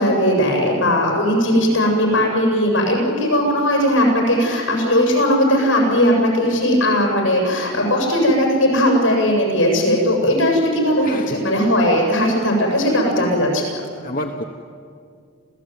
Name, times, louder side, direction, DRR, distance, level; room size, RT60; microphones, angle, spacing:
voice 1, 0.0-13.8, equal, 65° left, 0 dB, 7.5 m, -18 dB
voice 2, 11.0-11.4 12.9-13.5 14.0-14.4, left 1 dB, 40° left, 3 dB, 1.1 m, -30 dB
28.0 x 16.5 x 9.3 m, 2.2 s
head